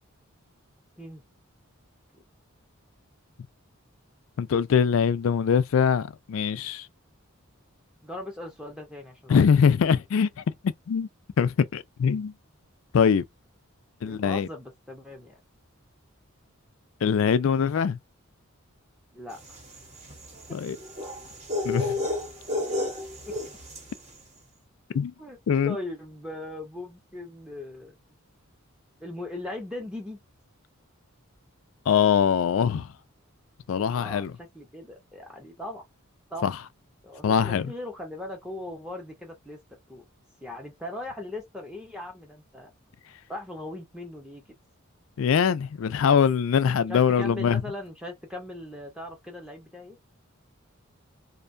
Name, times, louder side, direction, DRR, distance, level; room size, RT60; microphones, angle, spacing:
voice 1, 4.4-6.9 9.3-11.1 11.4-12.3 12.9-13.2 14.0-14.5 17.0-18.0 20.5-20.8 21.6-21.9 24.9-25.1 25.5-25.8 31.9-32.9 33.7-34.3 36.4-36.6 37.2-37.7 45.2-47.6, left 7 dB, 70° left, 0.4 m, -23 dB
voice 2, 8.0-9.7 14.0-15.4 19.1-19.6 23.3-23.4 25.2-25.4 25.6-28.0 29.0-30.2 34.0-35.8 36.3-36.5 37.0-39.6 39.9-40.1 40.4-42.7 43.3-44.4 46.9-50.0, left 1 dB, 5° right, 0.5 m, -39 dB
sound 1, 19.4-24.0, left 2 dB, 30° right, 0.8 m, -32 dB
2.6 x 2.2 x 2.5 m
head